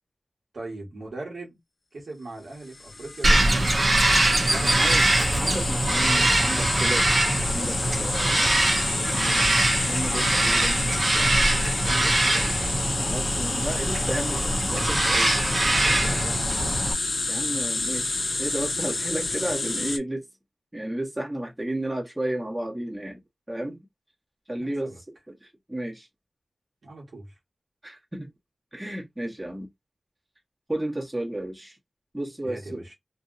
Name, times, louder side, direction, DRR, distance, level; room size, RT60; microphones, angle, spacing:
voice 1, 0.5-1.6 1.9-4.0 4.4-4.9 10.9-12.7 15.7-16.8 24.6-25.0 26.8-27.3 32.4-32.9, right 2 dB, 85° right, 1.4 m, -40 dB
sound 1, 2.7-20.0, left 3 dB, 65° left, 0.5 m, -29 dB
Bird vocalization bird call bird song, 3.2-16.9, right 1 dB, 65° right, 0.8 m, -23 dB
voice 2, 4.7-7.1 7.4-8.6 9.0-9.5 9.9-10.8 11.5-11.6 13.0-15.3 15.9-16.0 17.3-20.2 20.7-23.2 23.5-23.8 24.5-24.9 25.3-26.1 27.8-28.3 28.7-29.7 30.7-31.8 32.1-32.8, right 1 dB, 20° right, 1.3 m, -33 dB
2.8 x 2.6 x 2.5 m
cardioid pair, 40°, 0 cm